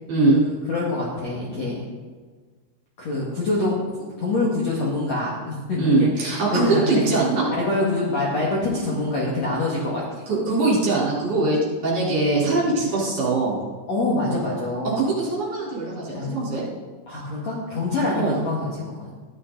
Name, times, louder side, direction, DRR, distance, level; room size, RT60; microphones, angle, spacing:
voice 1, 0.3-1.8 3.0-3.7 4.2-7.1 7.4-10.2 12.6-12.8 13.9-15.1 16.1-16.4 17.1-19.1, left 2 dB, 45° left, -5 dB, 2.4 m, -25 dB
voice 2, 5.8-7.5 10.3-11.6 11.8-13.6 15.0-16.6 18.2-18.4, right 3 dB, 40° right, -6 dB, 5.2 m, -22 dB
14.5 x 12.0 x 4.1 m, 1.4 s
omnidirectional pair, 5.6 m